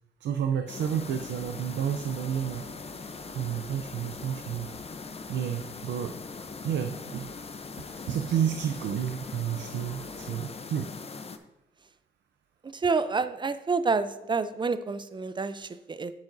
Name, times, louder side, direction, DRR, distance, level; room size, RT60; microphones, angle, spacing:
voice 1, 0.2-2.6 3.0-4.7 5.3-6.1 6.6-7.3 7.9-10.9, right 9 dB, 80° right, 7 dB, 0.5 m, -31 dB
sound 1, 0.7-11.4, left 4 dB, 35° left, 0.7 m, -41 dB
sound 2, 0.8-10.6, right 1 dB, ahead, 2.8 m, -53 dB
voice 2, 12.7-16.1, right 4 dB, 25° right, 13 dB, 0.5 m, -28 dB
9.6 x 7.1 x 2.6 m, 0.92 s
supercardioid pair, 60°, 18 cm